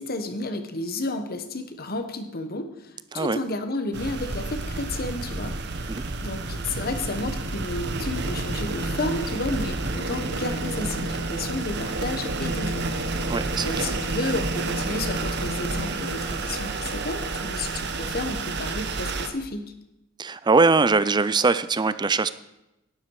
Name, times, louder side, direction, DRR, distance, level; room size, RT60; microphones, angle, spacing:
voice 1, 0.0-5.6 6.2-13.1 13.6-19.7, left 2 dB, 45° left, 8 dB, 1.2 m, -32 dB
sound 1, 3.9-19.3, right 2 dB, 55° right, 1.1 m, -30 dB
voice 2, 13.3-13.9 20.2-22.3, right 4 dB, 20° right, 15 dB, 0.4 m, -22 dB
11.5 x 10.5 x 4.8 m, 0.91 s
head